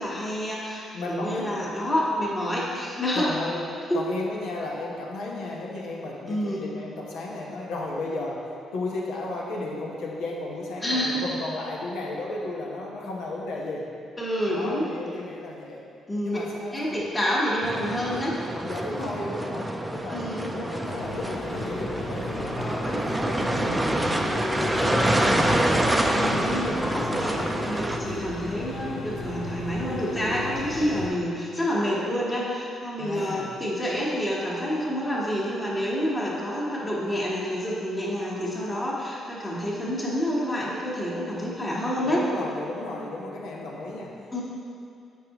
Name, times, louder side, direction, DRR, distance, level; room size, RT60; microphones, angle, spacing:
voice 1, 0.0-3.3 3.9-4.0 6.3-6.6 10.8-11.2 14.2-14.9 16.1-16.4 16.7-18.4 20.1-20.5 22.8-23.0 26.1-42.2 44.3-44.4, equal, 15° left, -7 dB, 1.3 m, -28 dB
voice 2, 0.9-1.5 3.1-13.9 14.5-15.8 16.2-17.0 18.6-25.7 33.0-33.5 42.0-44.4, left 2 dB, 90° left, -2 dB, 1.0 m, -34 dB
sound 1, 17.6-28.0, right 1 dB, 10° right, 0.5 m, -26 dB
sound 2, 20.8-31.1, left 1 dB, 65° left, 1.0 m, -34 dB
7.5 x 5.4 x 2.9 m, 2.4 s
cardioid pair, 90°, 0 cm